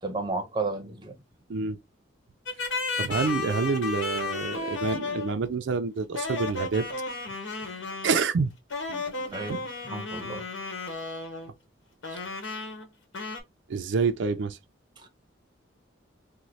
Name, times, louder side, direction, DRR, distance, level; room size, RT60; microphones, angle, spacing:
voice 1, 0.0-1.2 9.3-10.5 15.0-15.1, right 3 dB, 25° right, 0.6 m, -33 dB
sound 1, 2.5-5.4 6.1-8.2 8.7-11.5 12.0-12.9 13.1-13.4, left 4 dB, 90° left, 1.1 m, -33 dB
voice 2, 3.0-6.9 7.6-7.7 8.0-8.5 8.9-9.6 13.7-14.6, right 4 dB, 70° right, 0.4 m, -28 dB
3.0 x 2.1 x 3.9 m
head